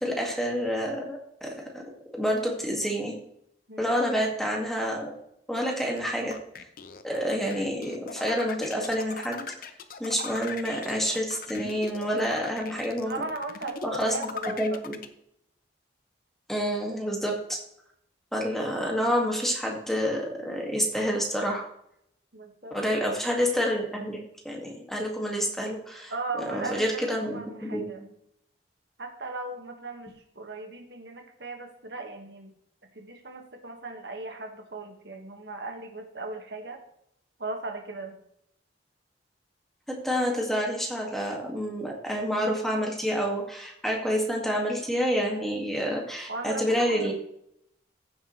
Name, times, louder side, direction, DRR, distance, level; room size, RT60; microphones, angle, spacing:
voice 1, 0.0-1.8 2.2-3.1 3.8-5.1 5.5-6.4 7.0-9.4 10.0-13.2 13.8-14.3 14.6-15.0 16.5-17.6 18.3-21.6 22.7-24.2 24.4-26.1 26.5-27.8 39.9-47.1, equal, ahead, -1 dB, 2.0 m, -28 dB
sound 1, 6.0-15.1, left 5 dB, 55° left, 0.8 m, -39 dB
voice 2, 13.0-14.8 22.3-22.8 26.1-28.0 29.0-32.5 32.9-36.8 37.4-38.2 46.3-47.1, right 3 dB, 70° right, 4 dB, 1.7 m, -37 dB
15.0 x 7.3 x 3.2 m, 0.73 s
head